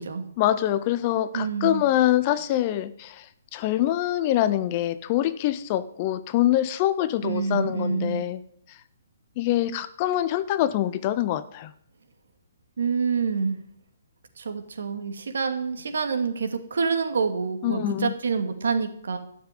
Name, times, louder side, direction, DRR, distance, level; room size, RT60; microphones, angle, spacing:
voice 1, 0.4-3.2 3.5-8.4 9.4-11.7 17.6-18.1, left 13 dB, 20° left, 15 dB, 0.5 m, -24 dB
voice 2, 1.3-1.8 7.2-8.2 12.8-13.6 14.4-19.2, right 5 dB, 75° right, 7 dB, 2.3 m, -27 dB
12.5 x 7.2 x 9.4 m, 0.68 s
hypercardioid pair, 180°, 0 cm